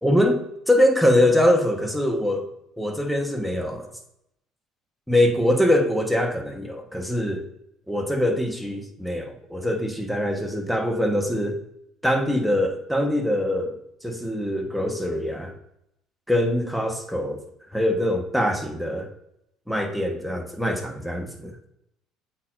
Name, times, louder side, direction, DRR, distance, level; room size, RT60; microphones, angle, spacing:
voice 1, 0.0-2.5 2.8-3.9 5.1-7.4 7.9-11.6 12.0-13.8 14.0-15.5 16.3-17.4 17.7-19.1 19.7-21.5, left 1 dB, ahead, 4 dB, 1.3 m, -23 dB
8.1 x 4.5 x 2.6 m, 0.77 s
hypercardioid pair, 65°, 0 cm